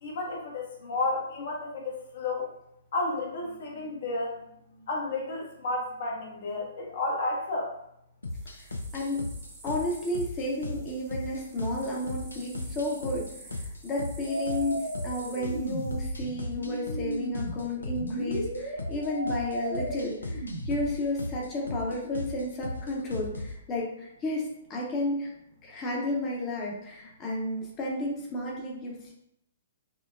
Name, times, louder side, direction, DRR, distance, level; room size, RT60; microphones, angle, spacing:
voice 1, 0.0-2.5 2.9-4.4 4.9-7.7, left 2 dB, 50° left, -1 dB, 0.8 m, -32 dB
sound 1, 8.2-23.6, left 2 dB, 75° left, 0.5 m, -38 dB
sound 2, 8.3-16.0, right 2 dB, 25° right, 0.9 m, -51 dB
voice 2, 8.5-9.3 9.6-25.3 25.6-29.1, left 1 dB, 25° left, -2 dB, 0.8 m, -32 dB
sound 3, 14.3-20.9, right 2 dB, 65° right, 0.8 m, -35 dB
5.8 x 2.2 x 2.4 m, 0.76 s
figure-of-eight pair, 120°, 0 cm